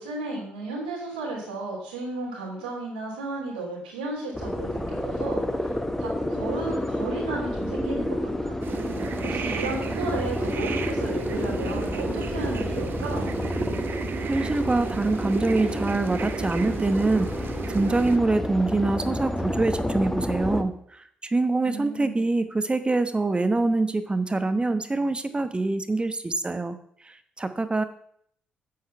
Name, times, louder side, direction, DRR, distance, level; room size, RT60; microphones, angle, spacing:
voice 1, 0.0-8.5 9.2-13.3 21.6-22.2, right 3 dB, 80° right, -2 dB, 3.1 m, -34 dB
sound 1, 4.3-20.6, left 1 dB, 10° left, 1.2 m, -30 dB
sound 2, 8.6-18.2, right 6 dB, 50° right, 0.9 m, -34 dB
voice 2, 14.3-27.8, right 3 dB, 20° right, 10 dB, 1.0 m, -25 dB
8.6 x 7.7 x 5.7 m, 0.66 s
figure-of-eight pair, 45°, 5 cm